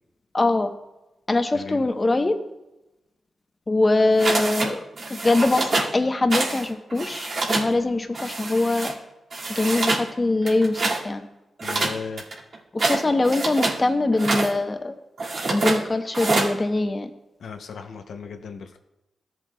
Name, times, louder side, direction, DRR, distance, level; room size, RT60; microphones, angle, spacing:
voice 1, 0.3-0.7 1.3-2.4 3.7-4.8 5.1-8.9 9.5-11.2 12.7-14.9 15.5-17.1, left 2 dB, 30° left, 6 dB, 0.9 m, -22 dB
voice 2, 1.5-1.9 11.6-12.3 17.4-18.8, left 5 dB, 80° left, 5 dB, 0.6 m, -36 dB
sound 1, 4.2-4.7 5.0-5.9 6.3-6.6 6.9-7.7 8.1-8.9 9.3-10.1 10.4-11.0 11.6-13.8 14.1-14.5 15.2-15.8 16.1-16.5, right 3 dB, 65° right, 2.1 m, -26 dB
14.0 x 7.5 x 2.3 m, 0.96 s
cardioid pair, 65°, 0 cm